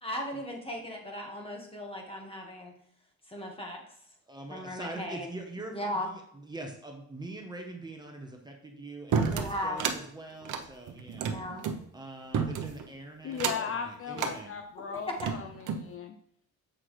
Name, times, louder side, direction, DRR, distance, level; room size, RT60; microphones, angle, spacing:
voice 1, 0.0-2.7 3.3-3.8 4.5-5.3 5.6-6.1 9.3-9.8 11.1-11.6 15.1-15.2, left 1 dB, 20° left, 1 dB, 1.6 m, -37 dB
voice 2, 4.3-11.3 11.9-14.5, right 2 dB, 15° right, 2 dB, 1.1 m, -44 dB
sound 1, 9.1-10.0 10.4-11.8 12.3-12.8 13.3-13.7 14.1-14.4 15.0-15.9, right 6 dB, 85° right, 0.8 m, -31 dB
voice 3, 13.2-15.5 15.7-16.2, left 7 dB, 45° left, 7 dB, 0.5 m, -37 dB
7.7 x 6.0 x 3.2 m, 0.66 s
cardioid pair, 135°, 30 cm